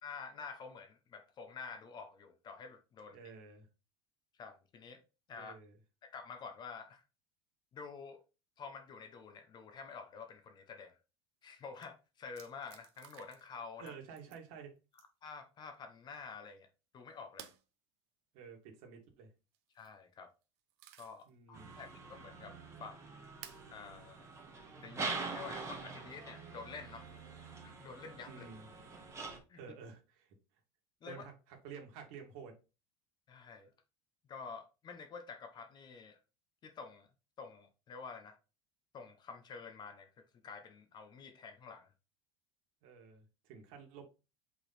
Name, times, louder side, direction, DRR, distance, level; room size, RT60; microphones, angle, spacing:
voice 1, 0.0-3.2 4.4-5.0 5.3-5.5 6.0-7.0 7.7-8.2 8.6-11.0 11.4-13.9 15.2-16.7 16.9-17.5 19.7-20.3 21.0-22.5 22.8-23.0 23.7-24.3 24.8-27.1 27.6-28.4 29.5-29.6 31.0-31.2 33.3-33.7 34.3-36.2 36.6-37.1 37.4-38.4 38.9-41.9, left 5 dB, 30° left, 0.9 m, -49 dB
voice 2, 3.1-3.7 5.4-5.8 13.8-14.8 18.3-19.3 21.3-21.7 28.3-28.7 29.6-30.3 31.0-32.6 42.8-44.0, right 6 dB, 60° right, 2.2 m, -51 dB
sound 1, 11.4-11.5 11.7-11.9 12.3-13.6 13.9-14.4 14.9-15.3 17.4-17.6 19.5-19.9 20.4-21.3 21.8-21.9 23.4-23.7 24.8-24.9 26.9-27.4, right 12 dB, 80° right, 1.0 m, -55 dB
sound 2, 21.5-29.4, right 4 dB, 20° right, 1.7 m, -45 dB
5.5 x 4.0 x 4.3 m
supercardioid pair, 135°, 14 cm